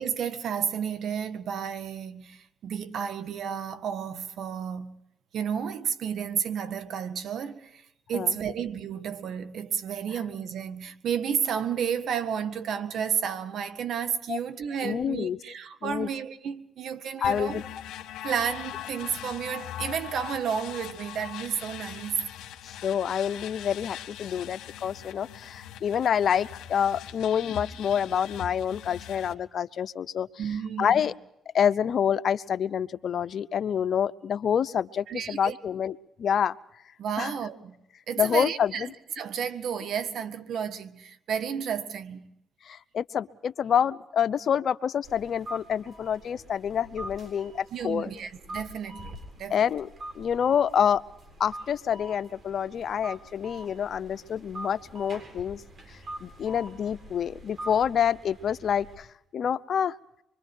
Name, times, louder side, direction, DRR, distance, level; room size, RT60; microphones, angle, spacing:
voice 1, 0.0-5.0 5.3-7.8 8.1-17.6 18.2-22.3 30.4-31.0 35.1-35.5 37.0-37.8 38.1-42.3 47.7-49.6, right 7 dB, 70° right, 1.7 m, -32 dB
voice 2, 14.8-15.4 15.8-16.1 17.2-17.7 22.6-30.3 30.8-31.1 31.5-36.6 37.2-37.3 38.2-38.9 42.6-48.1 49.5-49.9 50.1-51.0 51.4-55.6 56.2-59.1 59.3-59.9, left 8 dB, 60° left, 0.8 m, -27 dB
sound 1, 17.2-29.3, left 11 dB, 85° left, 1.5 m, -41 dB
sound 2, 45.0-59.0, right 1 dB, 45° right, 7.6 m, -44 dB
25.5 x 24.0 x 4.5 m
cardioid pair, 90°, 0 cm